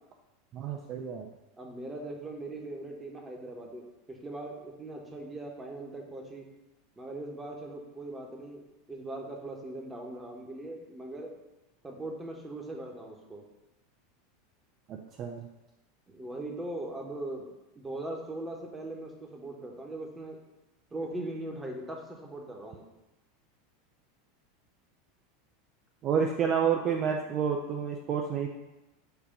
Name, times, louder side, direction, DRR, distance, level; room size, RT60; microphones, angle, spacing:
voice 1, 0.5-1.3 14.9-15.5 26.0-28.5, right 7 dB, 40° right, 1 dB, 0.5 m, -29 dB
voice 2, 1.6-6.5 7.0-11.3 11.8-13.4 16.1-17.5 17.7-20.4 20.9-22.8, right 2 dB, 15° right, 1 dB, 1.2 m, -40 dB
6.8 x 2.7 x 5.3 m, 1.0 s
figure-of-eight pair, 85°, 0 cm